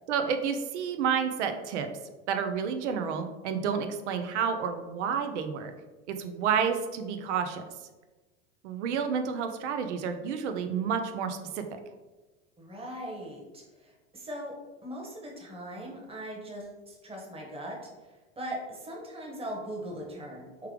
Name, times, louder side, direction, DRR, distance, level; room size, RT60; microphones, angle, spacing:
voice 1, 0.1-1.9 2.3-5.7 6.1-7.6 8.6-11.6, right 7 dB, 80° right, 7 dB, 0.6 m, -30 dB
voice 2, 12.6-14.6 14.8-20.7, right 1 dB, 15° right, -2 dB, 1.2 m, -40 dB
3.3 x 3.3 x 3.3 m, 1.2 s
hypercardioid pair, 90°, 34 cm